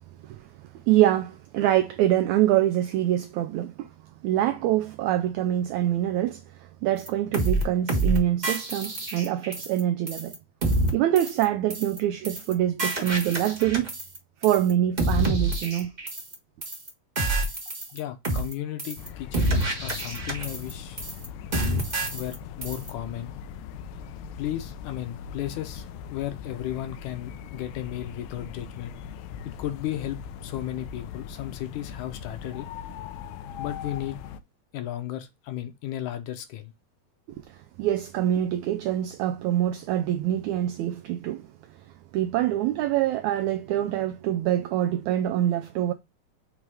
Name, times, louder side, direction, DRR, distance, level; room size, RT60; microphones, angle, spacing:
voice 1, 0.9-3.9 4.2-10.4 10.9-13.9 14.4-15.9 37.5-41.5 42.1-45.9, right 12 dB, 85° right, 1.6 m, -25 dB
sound 1, 7.1-7.2 7.3-7.6 7.9-8.2 8.4-9.8 10.1-10.3 10.6-10.9 11.2-11.4 11.7-12.0 12.2-12.5 12.8-14.2 14.4-14.7 15.0-16.3 16.6-16.9 17.2-18.0 18.2-18.5 18.8-19.1 19.3-20.7 21.0-21.3 21.5-22.3 22.6-22.9, right 2 dB, 55° right, 0.5 m, -27 dB
voice 2, 17.9-21.0 22.1-23.3 24.4-25.9 26.1-29.0 29.4-32.7 33.6-34.2 34.7-36.7, left 12 dB, 70° left, 2.1 m, -34 dB
sound 2, 19.0-34.4, left 8 dB, 90° left, 2.4 m, -40 dB
6.2 x 3.4 x 4.8 m
omnidirectional pair, 3.9 m